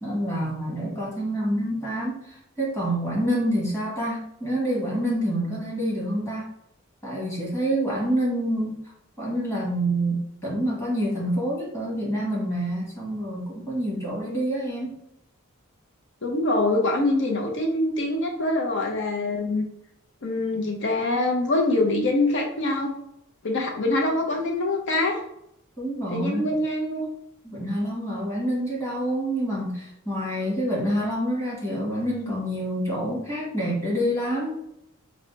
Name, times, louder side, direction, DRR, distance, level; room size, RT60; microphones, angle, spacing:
voice 1, 0.0-6.5 7.0-8.8 9.2-15.0 25.8-26.6 27.4-34.5, right 1 dB, 15° left, -5 dB, 1.5 m, -27 dB
voice 2, 16.2-19.7 20.2-22.9 23.4-25.2 26.1-27.1, left 2 dB, 55° left, 2 dB, 0.7 m, -24 dB
4.8 x 2.1 x 3.9 m, 0.77 s
head